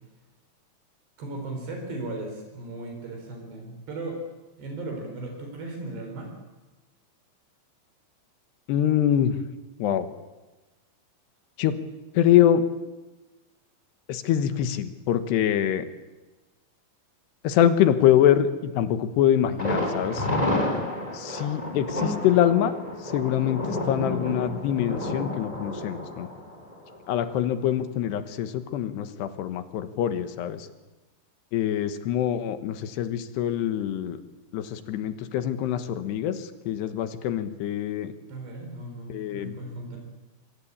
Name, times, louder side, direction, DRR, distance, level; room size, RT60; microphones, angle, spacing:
voice 1, 1.2-4.2 4.6-6.3 38.3-40.0, right 2 dB, 65° right, 3 dB, 6.1 m, -36 dB
voice 2, 8.7-9.4 9.8-10.1 11.6-11.8 12.1-12.6 14.1-15.9 17.4-20.3 21.1-22.7 23.0-26.3 27.1-30.7 31.5-34.2 34.5-38.1 39.1-39.6, left 10 dB, 70° left, 10 dB, 3.1 m, -24 dB
Thunder, 19.6-27.4 27.7-27.8 28.2-28.3, left 1 dB, 10° left, 4.5 m, -30 dB
25.5 x 21.5 x 8.7 m, 1.1 s
omnidirectional pair, 5.3 m